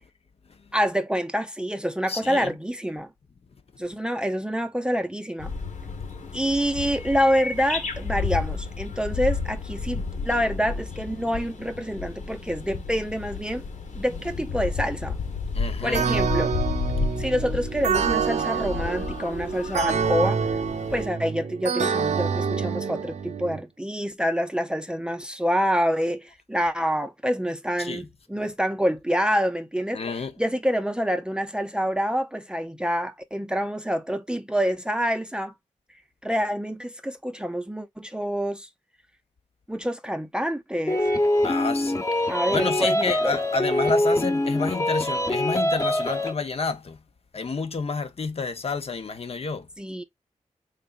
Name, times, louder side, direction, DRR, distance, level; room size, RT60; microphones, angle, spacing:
voice 1, 0.7-3.1 3.8-5.5 6.3-13.6 14.0-15.2 15.8-16.5 17.2-20.4 20.9-35.5 36.2-38.7 39.7-41.0 42.3-43.4 49.8-50.0, equal, 5° right, 0.6 m, -27 dB
voice 2, 2.1-2.5 5.9-6.3 15.5-16.1 27.8-28.1 29.9-30.3 41.4-42.2 42.5-47.0 47.3-49.7, left 4 dB, 50° left, 0.8 m, -30 dB
sound 1, 5.4-21.1, left 4 dB, 75° left, 1.4 m, -32 dB
sound 2, 15.9-23.6, right 6 dB, 65° right, 0.6 m, -27 dB
sound 3, 40.9-46.3, left 1 dB, 25° left, 1.0 m, -24 dB
3.9 x 3.5 x 2.5 m
wide cardioid pair, 95°, 13 cm